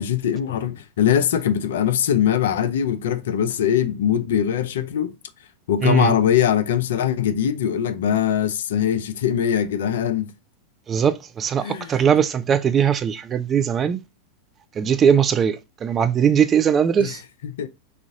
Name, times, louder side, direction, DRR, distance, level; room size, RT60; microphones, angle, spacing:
voice 1, 0.0-5.1 5.7-10.3 11.6-12.1 17.0-17.2 17.4-17.7, left 9 dB, 60° left, 0.5 m, -22 dB
voice 2, 5.8-6.1 10.9-14.0 14.8-17.2, right 7 dB, 25° right, 0.4 m, -20 dB
3.9 x 2.4 x 3.7 m
figure-of-eight pair, 90°, 0 cm